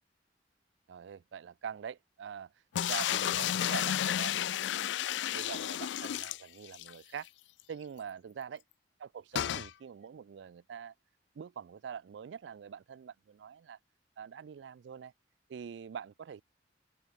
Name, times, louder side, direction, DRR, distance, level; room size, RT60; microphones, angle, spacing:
voice 1, 0.9-5.0 5.3-7.3 7.7-8.6 9.0-10.9 11.4-13.8 14.2-15.1 15.5-16.4, right 7 dB, 75° right, 0.4 m, -44 dB
sound 1, 2.8-6.9 7.3-7.4 7.6-7.7 9.4-9.7, left 11 dB, 75° left, 0.3 m, -32 dB
open air
head